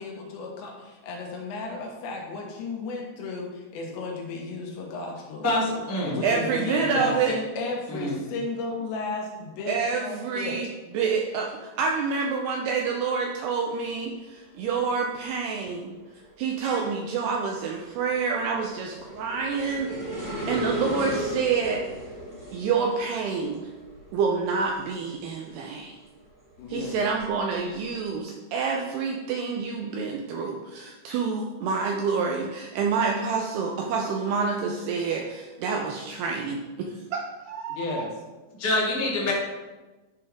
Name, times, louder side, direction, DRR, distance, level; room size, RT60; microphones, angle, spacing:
voice 1, 0.0-5.5 6.0-10.6 26.6-27.0 37.7-38.1, left 3 dB, 75° left, 0 dB, 3.4 m, -34 dB
voice 2, 5.4-6.2 6.5-7.1 7.9-8.2 38.6-39.3, left 1 dB, 15° left, -7 dB, 0.4 m, -27 dB
voice 3, 6.2-7.4 9.7-10.7 10.9-11.5 11.8-15.9 16.4-19.9 20.5-21.8 22.5-23.7 24.1-25.9 26.7-38.1, right 5 dB, 90° right, 1 dB, 2.3 m, -27 dB
sound 1, 13.7-14.1 14.5-25.8 26.2-27.9, right 1 dB, 25° right, 1.7 m, -37 dB
11.0 x 5.4 x 3.6 m, 1.2 s
omnidirectional pair, 5.4 m